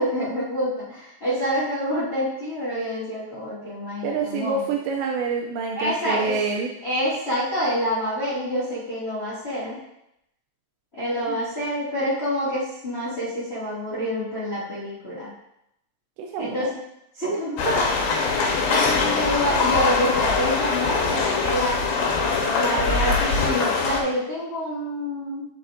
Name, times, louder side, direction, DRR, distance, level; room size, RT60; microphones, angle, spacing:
voice 1, 0.0-4.6 5.7-6.3 6.8-9.8 10.9-15.3 16.4-16.7 17.2-17.9 18.7-21.8 22.6-25.5, equal, 45° left, -12 dB, 0.7 m, -27 dB
voice 2, 4.0-6.7 11.3-11.4 16.2-16.7, right 4 dB, 85° right, 1 dB, 2.5 m, -27 dB
sound 1, 17.6-24.0, left 4 dB, 75° left, 2.9 m, -22 dB
9.6 x 5.7 x 2.7 m, 0.80 s
omnidirectional pair, 5.6 m